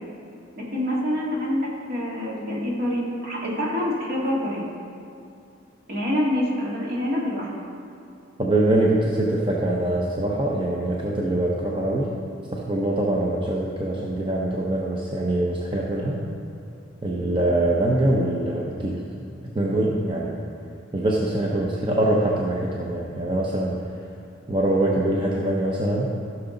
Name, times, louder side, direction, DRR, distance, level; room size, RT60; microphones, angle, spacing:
voice 1, 0.6-4.7 5.9-7.5, left 1 dB, 55° right, -5 dB, 2.3 m, -26 dB
voice 2, 8.4-12.1 12.5-16.2 17.0-19.0 19.5-20.3 20.9-23.8 24.5-26.1, right 1 dB, 25° right, -3 dB, 0.8 m, -23 dB
15.5 x 6.0 x 3.9 m, 2.5 s
head